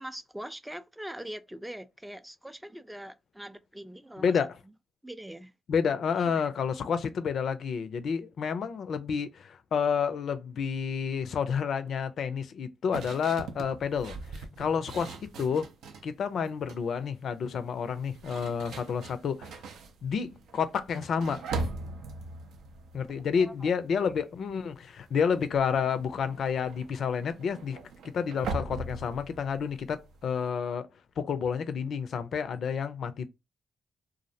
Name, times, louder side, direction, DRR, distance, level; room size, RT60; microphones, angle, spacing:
voice 1, 0.0-4.4 5.0-5.5 6.2-6.4 23.4-23.7 24.1-24.2 24.5-24.7, right 1 dB, 10° right, 0.4 m, -43 dB
voice 2, 4.2-4.6 5.7-15.7 16.0-19.5 20.0-21.4 22.9-27.8 28.0-30.9 31.2-33.3, left 6 dB, 65° left, 0.4 m, -30 dB
sound 1, 12.9-16.1 16.5-16.9 17.8-24.1 24.3-24.7 25.0-30.5, right 3 dB, 75° right, 0.4 m, -41 dB
2.4 x 2.0 x 2.7 m
hypercardioid pair, 45°, 0 cm